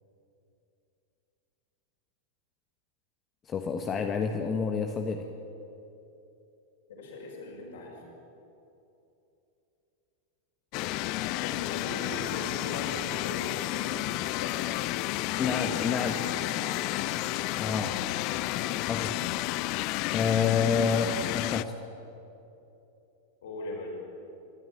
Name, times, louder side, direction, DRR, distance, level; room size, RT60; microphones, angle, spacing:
voice 1, 3.4-5.3 15.4-16.2 17.6-18.0 18.9-19.2 20.1-21.8, left 6 dB, 25° left, 5 dB, 1.2 m, -28 dB
voice 2, 6.9-8.0 11.4-14.6 15.1-17.3 23.4-23.9, left 2 dB, 60° left, -2 dB, 6.0 m, -40 dB
sound 1, 10.7-21.6, left 17 dB, 45° left, 0.5 m, -31 dB
24.5 x 12.5 x 8.7 m, 2.9 s
figure-of-eight pair, 90°, 0 cm